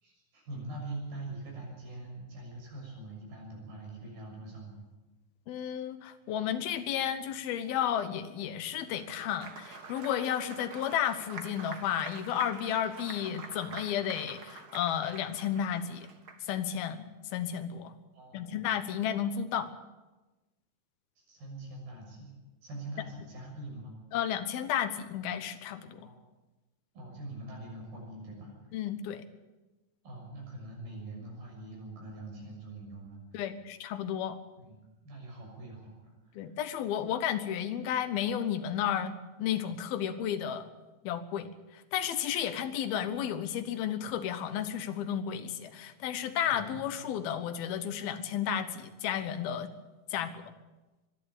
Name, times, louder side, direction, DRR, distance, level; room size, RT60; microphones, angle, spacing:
voice 1, 0.0-4.8 18.1-18.6 21.2-22.3 22.6-24.0 26.0-26.2 26.9-28.5 30.0-33.4 34.6-36.5 46.5-47.1 50.3-50.4, right 2 dB, 80° right, 0 dB, 8.4 m, -44 dB
voice 2, 5.5-16.1 16.4-17.0 17.3-17.9 18.3-19.7 24.1-26.1 28.7-29.2 33.3-34.4 36.3-40.7 41.0-49.7 50.1-50.4, left 9 dB, 85° left, 11 dB, 3.1 m, -32 dB
Applause, 8.8-16.6, right 4 dB, 50° right, 1.2 m, -46 dB
23.5 x 11.0 x 9.9 m, 1.1 s
omnidirectional pair, 4.2 m